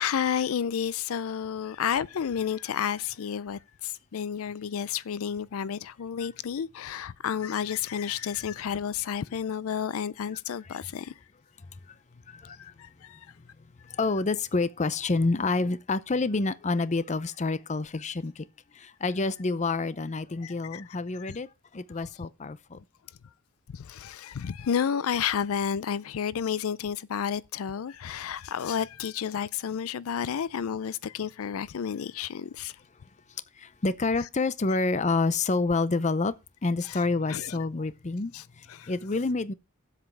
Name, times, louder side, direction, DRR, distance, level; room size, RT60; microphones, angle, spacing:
voice 1, 0.0-11.1 12.4-13.3 20.4-20.8 21.2-21.4 23.7-32.8 36.8-37.0 37.3-37.6 38.3-38.4 38.7-38.9, left 8 dB, 80° left, 0.4 m, -31 dB
voice 2, 12.3-12.7 13.9-18.4 18.8-22.8 33.6-36.3 36.6-39.5, left 3 dB, 35° left, 0.6 m, -28 dB
7.9 x 7.4 x 5.7 m
head